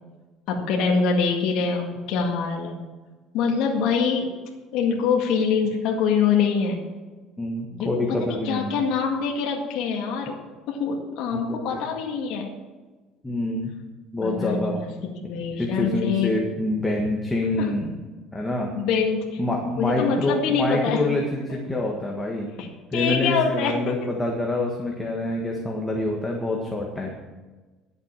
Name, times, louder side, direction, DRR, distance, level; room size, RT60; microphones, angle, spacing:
voice 1, 0.5-2.9 3.3-4.3 4.7-6.8 7.7-10.4 10.7-12.5 14.2-16.3 17.6-17.7 18.8-19.4 19.8-21.1 22.6-22.7 22.9-23.8, left 6 dB, 70° left, -1 dB, 2.0 m, -24 dB
voice 2, 7.4-8.7 11.3-11.8 13.2-13.7 14.1-14.8 15.5-18.0 18.3-18.7 19.4-22.5 22.9-27.1, left 2 dB, 10° left, -1 dB, 1.6 m, -26 dB
12.0 x 8.0 x 7.4 m, 1.3 s
cardioid pair, 135°, 0 cm